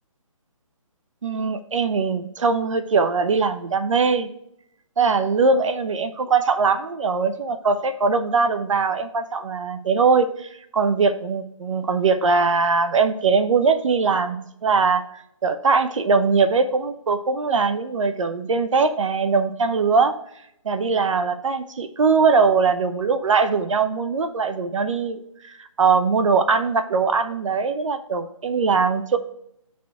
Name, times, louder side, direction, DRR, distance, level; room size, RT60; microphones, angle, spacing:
voice 1, 1.2-4.3 5.0-20.1 20.6-29.2, right 4 dB, 60° right, 10 dB, 0.7 m, -21 dB
6.0 x 4.2 x 5.7 m, 0.75 s
hypercardioid pair, 160°, 18 cm